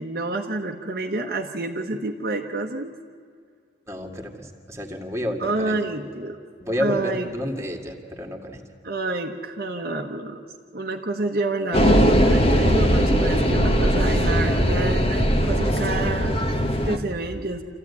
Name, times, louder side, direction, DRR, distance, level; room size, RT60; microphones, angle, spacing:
voice 1, 0.0-2.9 5.4-6.4 6.8-7.3 8.8-10.4 10.7-16.4 16.8-17.6, right 2 dB, 55° right, 2 dB, 1.1 m, -28 dB
voice 2, 3.9-5.8 6.6-8.6, equal, 15° right, 2 dB, 2.0 m, -30 dB
sound 1, 11.7-17.0, equal, 35° left, 1.5 m, -19 dB
27.0 x 14.5 x 9.6 m, 2.2 s
head